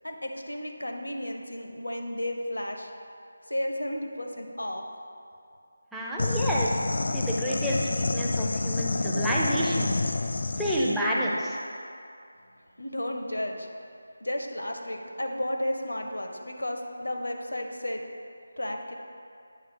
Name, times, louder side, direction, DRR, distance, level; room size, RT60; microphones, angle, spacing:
voice 1, 0.0-2.9 3.5-4.8 12.8-13.7 14.2-18.0 18.6-18.9, left 1 dB, 80° left, 3 dB, 0.8 m, -33 dB
voice 2, 5.9-6.7 7.1-9.9 10.6-11.6, equal, ahead, -7 dB, 0.5 m, -29 dB
sound 1, 6.2-11.0, left 3 dB, 55° left, 0.3 m, -28 dB
8.6 x 3.3 x 5.4 m, 2.5 s
figure-of-eight pair, 160°, 0 cm